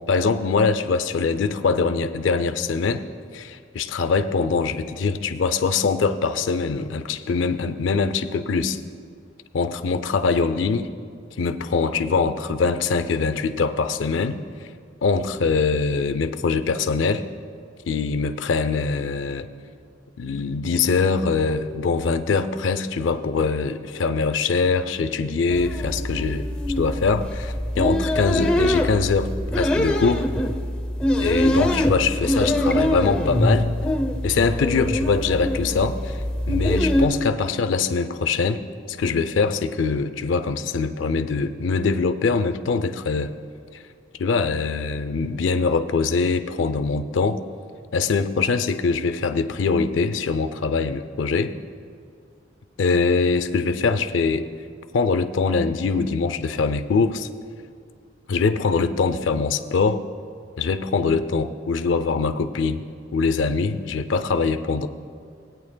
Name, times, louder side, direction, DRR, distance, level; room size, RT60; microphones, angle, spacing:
voice 1, 0.1-3.1 3.3-8.8 9.5-10.9 11.4-14.4 15.0-17.2 17.9-19.5 20.2-26.5 26.8-30.3 31.2-33.7 34.2-43.3 44.2-47.4 47.9-51.5 52.8-54.5 54.9-57.3 58.3-60.0 60.6-62.8 63.1-64.9, left 4 dB, 85° left, 10 dB, 0.4 m, -23 dB
sound 1, 25.5-37.1, left 1 dB, 5° left, 0.6 m, -23 dB
18.5 x 9.1 x 2.2 m, 2.2 s
head